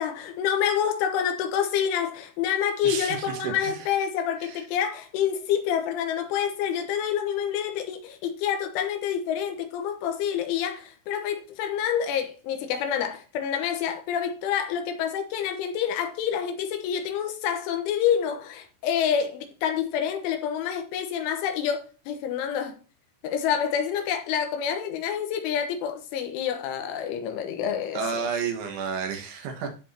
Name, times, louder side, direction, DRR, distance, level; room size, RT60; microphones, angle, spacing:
voice 1, 0.0-22.8 23.2-28.0, left 8 dB, 80° left, 3.5 m, -27 dB
voice 2, 2.8-3.9 4.4-4.6 27.9-29.7, right 6 dB, 75° right, 3.8 m, -31 dB
13.5 x 4.7 x 2.8 m
omnidirectional pair, 5.6 m